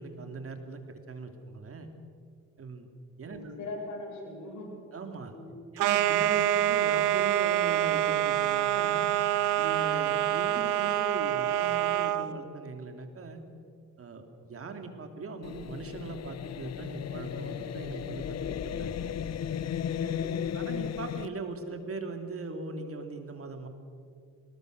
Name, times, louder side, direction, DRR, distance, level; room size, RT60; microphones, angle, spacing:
voice 1, 0.0-1.9 2.6-2.9 3.2-3.5 4.9-5.3 5.7-9.1 9.6-13.4 14.0-19.2 20.0-20.2 20.5-23.7, right 3 dB, 50° right, 6 dB, 2.8 m, -40 dB
voice 2, 3.2-4.7 5.3-5.6 20.1-20.5, left 2 dB, 75° left, -1 dB, 7.9 m, -41 dB
sound 1, 5.8-12.3, right 12 dB, 90° right, 1.0 m, -26 dB
sound 2, 15.4-21.3, left 9 dB, 60° left, 0.9 m, -35 dB
24.0 x 20.0 x 6.6 m, 2.3 s
cardioid pair, 90°, 30 cm